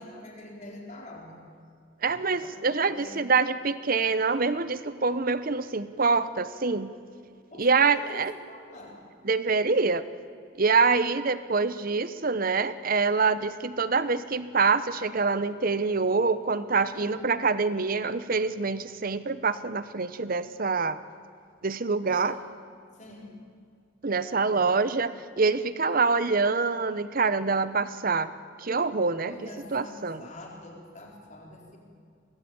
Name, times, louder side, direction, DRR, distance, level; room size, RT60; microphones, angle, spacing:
voice 1, 0.0-1.4 2.2-3.3 7.5-9.1 16.9-17.3 22.2-22.5 22.9-23.4 24.5-24.7 29.2-31.8, left 1 dB, 35° left, 0 dB, 4.2 m, -45 dB
voice 2, 2.0-6.9 7.6-8.3 9.2-10.0 10.6-21.0 21.6-22.4 24.0-28.3 28.6-29.4 29.7-30.2, right 4 dB, 45° right, 14 dB, 0.8 m, -25 dB
23.5 x 19.0 x 8.7 m, 2.2 s
head